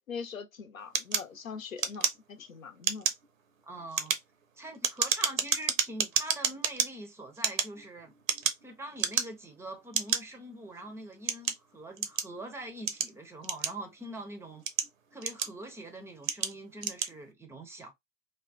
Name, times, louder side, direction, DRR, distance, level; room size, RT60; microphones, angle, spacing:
voice 1, 0.1-3.1, left 5 dB, 90° left, 0.8 m, -42 dB
sound 1, 0.9-2.5 2.8-3.3 3.8-6.9 7.3-8.7 9.0-9.5 9.9-10.2 10.9-12.3 12.9-14.0 14.5-15.7 16.2-16.5 16.8-17.1, right 7 dB, 85° right, 0.8 m, -30 dB
voice 2, 3.6-4.2 4.6-8.1 8.4-14.6 15.1-17.9, right 1 dB, 5° right, 0.5 m, -43 dB
3.5 x 2.2 x 2.4 m
hypercardioid pair, 110°, 39 cm